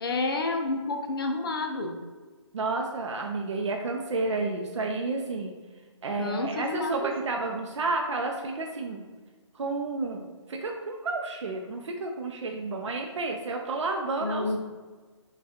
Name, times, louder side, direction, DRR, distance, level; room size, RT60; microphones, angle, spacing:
voice 1, 0.0-1.9 6.2-7.1 14.2-14.6, left 3 dB, 50° left, 3 dB, 0.5 m, -29 dB
voice 2, 2.5-5.5 6.0-9.0 9.5-14.6, right 3 dB, 75° right, 2 dB, 0.5 m, -31 dB
5.5 x 2.4 x 2.8 m, 1.4 s
hypercardioid pair, 160°, 16 cm